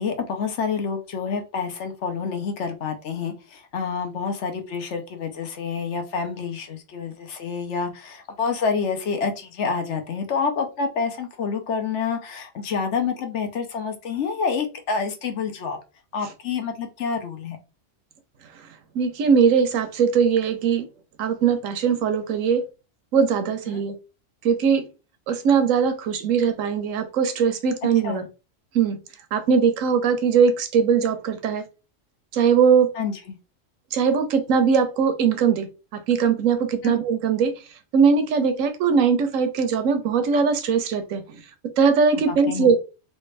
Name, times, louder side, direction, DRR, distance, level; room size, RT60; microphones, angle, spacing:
voice 1, 0.0-15.8 16.1-17.6 23.7-23.8 28.0-28.3 32.9-33.4 36.8-37.0 42.3-42.7, left 5 dB, 65° left, 1.0 m, -28 dB
voice 2, 18.9-20.9 21.2-22.6 23.1-23.9 24.4-24.8 25.3-28.2 28.7-29.0 29.3-31.6 32.3-32.9 33.9-35.7 35.9-37.5 37.9-41.2 41.8-42.8, right 6 dB, 80° right, 1.0 m, -20 dB
3.3 x 2.8 x 3.2 m
omnidirectional pair, 1.3 m